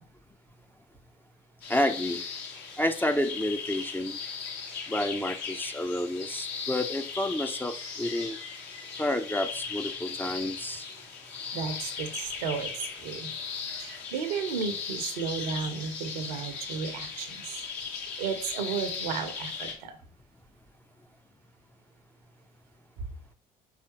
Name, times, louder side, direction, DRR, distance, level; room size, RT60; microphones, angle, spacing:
sound 1, 1.6-19.7, left 5 dB, 65° left, 1.0 m, -38 dB
voice 1, 1.7-2.2 2.8-4.2 4.9-8.4 9.0-10.9, left 1 dB, 10° left, 8 dB, 0.4 m, -30 dB
voice 2, 11.5-12.7 13.0-13.3 13.8-19.9, right 6 dB, 75° right, 8 dB, 0.7 m, -34 dB
4.8 x 3.4 x 2.8 m, 0.43 s
figure-of-eight pair, 50°, 20 cm